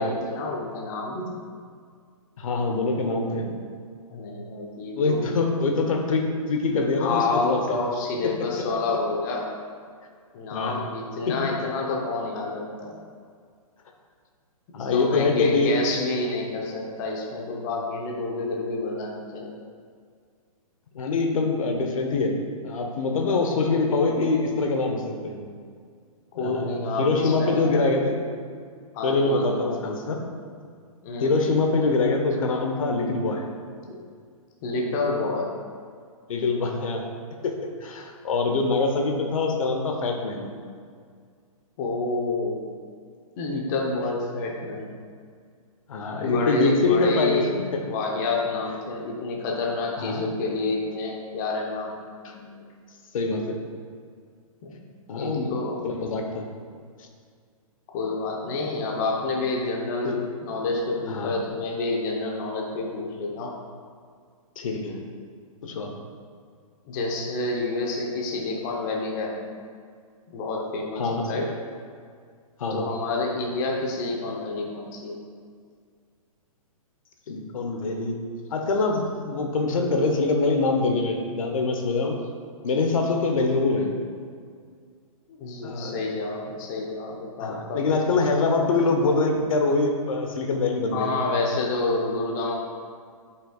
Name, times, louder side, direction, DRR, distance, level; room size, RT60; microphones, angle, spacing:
voice 1, 0.0-1.4 4.1-5.4 7.0-9.5 10.3-12.9 14.8-19.6 23.9-24.2 26.4-27.8 28.9-29.8 31.0-31.4 33.9-34.0 34.6-35.5 41.8-42.7 43.4-44.9 46.2-47.5 47.8-51.9 54.6-54.8 55.1-55.8 57.9-60.1 60.4-63.5 66.9-69.3 70.3-71.5 72.7-75.1 85.3-88.3 90.9-92.5, left 3 dB, 30° left, -1 dB, 0.9 m, -28 dB
voice 2, 2.4-3.5 5.0-7.8 8.2-8.5 10.5-10.8 11.3-11.4 14.7-15.7 20.9-22.4 22.6-25.4 26.3-28.2 29.0-30.2 31.2-33.4 36.3-37.0 37.4-37.5 37.8-40.5 45.9-48.2 50.0-50.2 52.2-52.6 53.1-53.6 55.1-56.5 60.0-60.2 61.1-61.3 64.6-65.0 65.6-65.9 71.0-71.4 72.6-72.9 77.3-78.2 78.5-82.2 82.6-83.9 85.6-86.0 87.4-91.1, left 3 dB, 65° left, 3 dB, 1.0 m, -24 dB
9.9 x 5.7 x 2.4 m, 2.1 s
hypercardioid pair, 155°, 19 cm